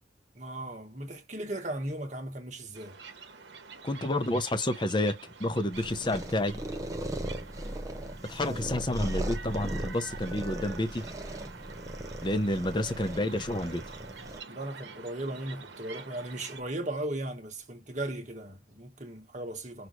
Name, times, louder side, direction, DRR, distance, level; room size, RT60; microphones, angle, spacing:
voice 1, 0.3-3.0 8.4-8.6 14.5-19.9, right 1 dB, 40° right, 1.5 m, -37 dB
sound 1, 2.7-16.6, right 5 dB, 70° right, 1.2 m, -47 dB
voice 2, 3.8-6.6 8.2-11.1 12.2-13.8, left 1 dB, 25° left, 0.7 m, -29 dB
sound 2, 5.7-14.4, right 1 dB, 15° right, 0.8 m, -38 dB
6.3 x 2.6 x 3.1 m
head